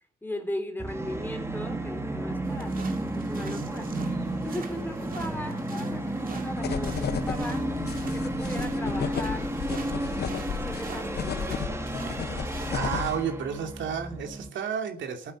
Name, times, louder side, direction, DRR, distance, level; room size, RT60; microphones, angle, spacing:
voice 1, 0.2-3.9 4.4-7.6 8.1-9.6 10.6-11.8, left 1 dB, 10° left, 7 dB, 3.4 m, -38 dB
Musical instrument, 0.8-14.5, right 1 dB, 15° right, 2.2 m, -32 dB
sound 1, 2.4-12.7, right 5 dB, 45° right, 2.5 m, -46 dB
sound 2, 6.6-13.2, left 7 dB, 55° left, 1.3 m, -34 dB
voice 2, 12.7-15.3, right 7 dB, 70° right, 5 dB, 2.7 m, -31 dB
14.0 x 8.2 x 6.3 m, 0.43 s
cardioid pair, 90°, 20 cm